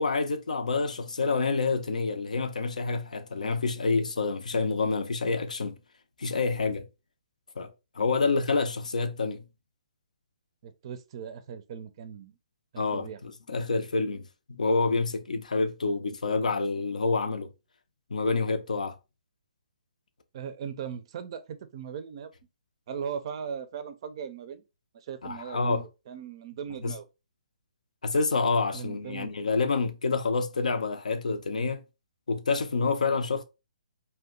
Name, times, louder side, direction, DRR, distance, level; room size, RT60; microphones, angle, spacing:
voice 1, 0.0-5.8 6.2-6.9 7.6-7.7 8.0-9.4 12.8-17.5 18.1-19.0 25.2-25.8 26.8-26.9 28.0-31.8 32.3-33.4, left 4 dB, 75° left, 0.5 m, -28 dB
voice 2, 10.6-12.4 12.7-13.2 20.3-22.3 22.9-24.6 24.9-27.0 28.7-29.3, right 7 dB, 45° right, 0.4 m, -39 dB
2.8 x 2.1 x 3.7 m
figure-of-eight pair, 140°, 4 cm